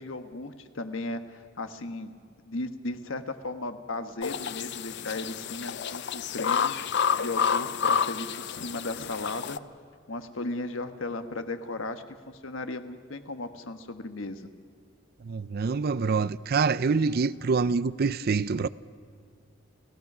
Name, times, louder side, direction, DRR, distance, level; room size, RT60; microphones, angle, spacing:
voice 1, 0.0-2.1 2.5-6.9 7.2-9.6 10.1-14.5, left 2 dB, 80° left, 1.3 m, -36 dB
sound 1, 4.2-9.6, left 7 dB, 60° left, 0.6 m, -29 dB
voice 2, 15.2-18.7, right 4 dB, 50° right, 0.5 m, -26 dB
29.5 x 16.5 x 6.1 m
head